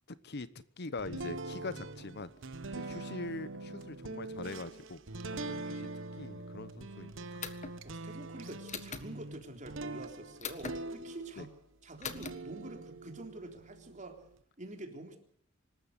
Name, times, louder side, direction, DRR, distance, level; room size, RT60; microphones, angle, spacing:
voice 1, 0.1-2.3 2.7-5.0 5.3-5.9 6.2-7.3 11.4-11.5, left 3 dB, 55° left, 15 dB, 1.0 m, -43 dB
sound 1, 1.0-11.6 12.0-14.4, right 2 dB, 65° right, 1.3 m, -43 dB
sound 2, 7.4-7.8 8.7-9.1 10.4-10.8 12.0-12.3, left 6 dB, 35° left, 1.6 m, -40 dB
voice 2, 7.6-11.5 11.8-14.3 14.6-15.2, right 1 dB, 40° right, 3 dB, 3.7 m, -47 dB
25.5 x 13.5 x 8.2 m, 0.66 s
head